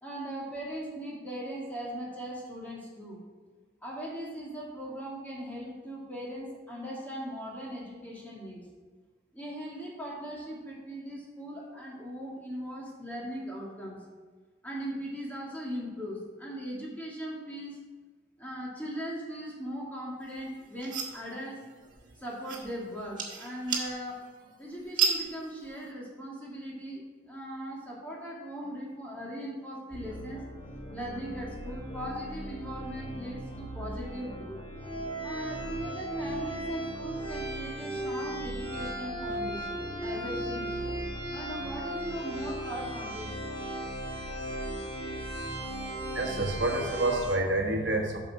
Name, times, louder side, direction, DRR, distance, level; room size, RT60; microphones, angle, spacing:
voice 1, 0.0-3.2 3.8-8.6 9.3-14.0 14.6-17.8 18.4-21.6 22.2-24.2 24.6-30.4 30.9-34.6 35.2-40.7 41.3-43.3, equal, 10° left, -4 dB, 2.0 m, -39 dB
sound 1, 20.2-25.9, right 6 dB, 45° right, 1.7 m, -35 dB
sound 2, 29.9-47.4, right 1 dB, 25° left, 1.1 m, -36 dB
voice 2, 45.7-48.2, right 2 dB, 70° right, 2 dB, 1.2 m, -29 dB
8.1 x 6.5 x 4.6 m, 1.4 s
head